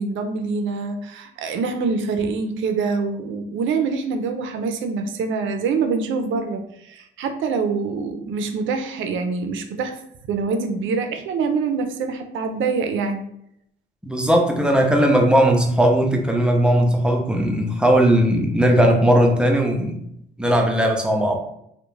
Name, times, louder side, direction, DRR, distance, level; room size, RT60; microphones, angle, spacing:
voice 1, 0.0-10.0 10.3-13.2 20.5-20.7, right 4 dB, 75° right, 6 dB, 0.4 m, -25 dB
voice 2, 14.0-20.0 20.4-21.4, right 1 dB, 5° right, 1 dB, 0.5 m, -18 dB
2.3 x 2.1 x 3.0 m, 0.74 s
cardioid pair, 90°, 20 cm